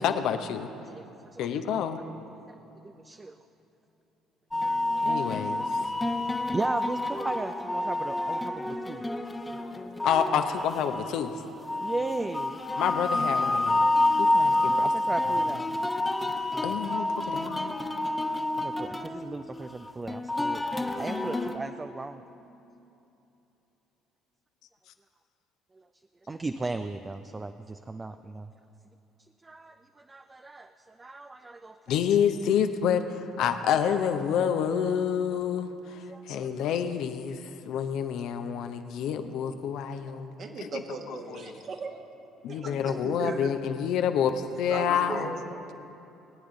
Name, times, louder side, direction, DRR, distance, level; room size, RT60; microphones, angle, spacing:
voice 1, 0.0-0.7 1.4-2.0 5.0-5.6 10.0-11.3 12.8-13.8 14.2-14.9 16.6-17.7 31.9-41.5 42.4-45.4, left 8 dB, 60° left, 8 dB, 0.7 m, -28 dB
voice 2, 0.9-1.7 2.5-2.6 2.8-3.4 6.5-9.0 11.8-12.6 14.8-15.7 16.5-16.8 18.6-20.6 21.0-22.2 25.7-25.9 26.3-28.5 29.2-32.0 36.1-36.5, right 3 dB, 25° right, 8 dB, 0.4 m, -36 dB
sound 1, 4.5-21.5, left 2 dB, 15° left, 0.9 m, -28 dB
voice 3, 40.4-42.0 42.5-43.6 44.7-45.7, right 4 dB, 45° right, 3 dB, 1.4 m, -37 dB
19.5 x 9.5 x 3.8 m, 2.9 s
figure-of-eight pair, 50°, 0 cm